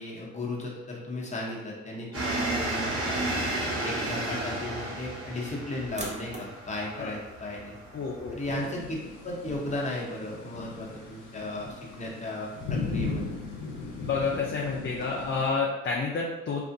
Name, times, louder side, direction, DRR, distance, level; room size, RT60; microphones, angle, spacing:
voice 1, 0.0-3.5 3.8-7.8 8.3-9.0 9.2-13.3, left 1 dB, 25° left, -3 dB, 0.9 m, -35 dB
sound 1, 2.1-8.6, right 1 dB, 45° right, 1.4 m, -32 dB
sound 2, 5.9-14.6, right 2 dB, 25° right, 0.7 m, -48 dB
voice 2, 7.9-8.4 14.1-16.6, left 4 dB, 40° left, -3 dB, 0.5 m, -29 dB
sound 3, 8.5-15.5, left 4 dB, 85° left, 0.7 m, -37 dB
3.4 x 2.5 x 2.6 m, 1.1 s
cardioid pair, 90°, 30 cm